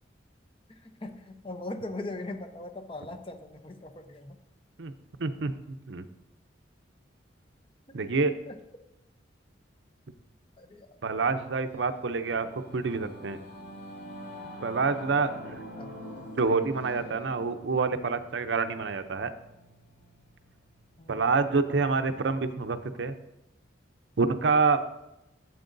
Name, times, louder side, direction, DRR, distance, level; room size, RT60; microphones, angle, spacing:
voice 1, 0.7-4.4 7.9-8.0 8.5-8.6 10.6-10.9 15.8-16.3 21.0-21.3, left 2 dB, 30° left, 7 dB, 0.6 m, -40 dB
voice 2, 5.2-6.1 7.9-8.3 11.0-13.4 14.6-15.6 16.4-19.3 21.1-23.1 24.2-24.8, right 4 dB, 70° right, 10 dB, 0.6 m, -27 dB
Singing / Musical instrument, 11.8-21.5, equal, 70° left, 2.1 m, -46 dB
13.0 x 8.0 x 2.6 m, 0.90 s
head